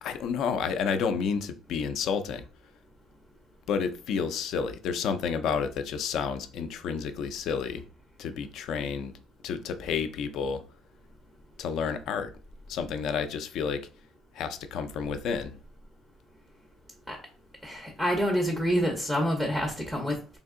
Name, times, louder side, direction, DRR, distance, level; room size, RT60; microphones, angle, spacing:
voice 1, 0.0-2.4 3.7-7.8 8.2-9.1 9.4-10.6 11.6-12.3 12.7-13.9 14.3-15.6, left 6 dB, 60° left, 0.5 m, -30 dB
voice 2, 17.6-20.4, equal, 5° left, 0.5 m, -27 dB
3.4 x 2.7 x 3.6 m
cardioid pair, 160°, 0 cm